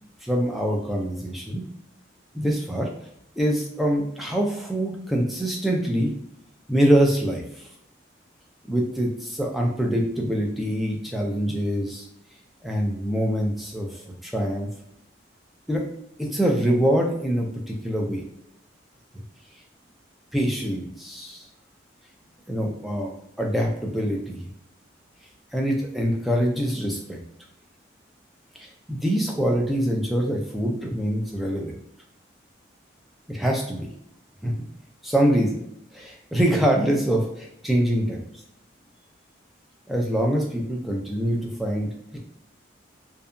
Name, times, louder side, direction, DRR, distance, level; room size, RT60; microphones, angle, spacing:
voice 1, 0.2-1.6 2.3-2.9 3.4-6.1 6.7-7.7 8.7-12.1 12.6-14.7 15.7-15.8 16.2-18.2 20.3-21.4 22.5-23.1 23.4-24.5 25.5-27.2 28.6-31.7 33.3-33.9 34.4-34.5 35.0-35.6 35.9-38.2 39.9-42.2, equal, ahead, -1 dB, 0.3 m, -24 dB
2.7 x 2.2 x 2.5 m, 0.75 s
head